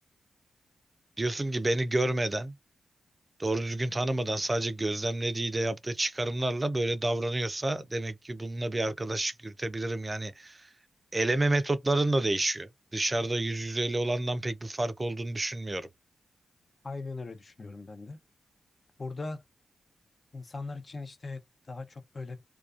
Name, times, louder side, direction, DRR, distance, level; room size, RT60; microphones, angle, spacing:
voice 1, 1.2-2.5 3.4-10.7 11.1-15.9, right 2 dB, 30° right, 0.4 m, -29 dB
voice 2, 16.8-18.2 19.0-19.4 20.3-22.4, left 3 dB, 45° left, 0.6 m, -39 dB
2.4 x 2.3 x 2.4 m
supercardioid pair, 40°, 0 cm